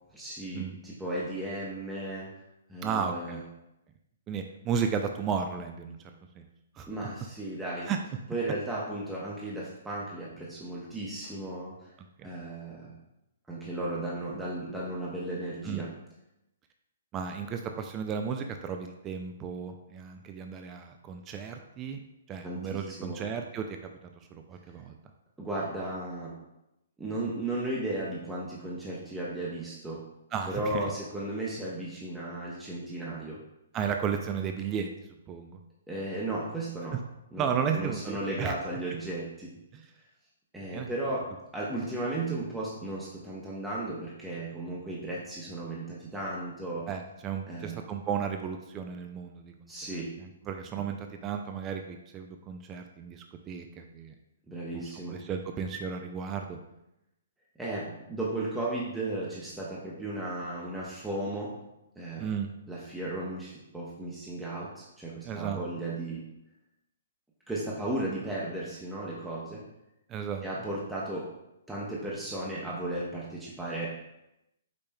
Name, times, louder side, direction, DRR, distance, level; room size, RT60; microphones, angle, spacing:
voice 1, 0.1-2.4 2.7-3.4 6.8-7.9 8.3-11.9 12.2-13.0 13.5-15.9 22.4-23.2 25.4-26.4 27.0-30.1 30.5-33.4 35.9-37.0 37.3-39.6 40.5-46.9 47.5-47.8 49.7-50.2 54.5-55.2 57.6-61.6 62.0-62.3 62.7-66.3 67.5-69.7 70.4-71.3 71.7-74.0, right 1 dB, 10° right, -6 dB, 0.7 m, -35 dB
voice 2, 2.8-3.4 4.3-6.0 6.4-6.5 6.8-6.9 7.9-8.0 12.2-12.3 15.6-15.9 17.1-22.0 22.3-23.8 24.0-24.9 30.3-30.8 33.7-34.9 35.3-35.6 37.4-38.5 39.7-39.9 40.6-40.9 46.9-49.7 50.2-54.2 54.7-56.6 62.2-62.5 65.2-65.6 70.1-70.4, right 7 dB, 25° right, 5 dB, 0.3 m, -34 dB
5.1 x 4.2 x 2.2 m, 0.88 s
figure-of-eight pair, 125°, 0 cm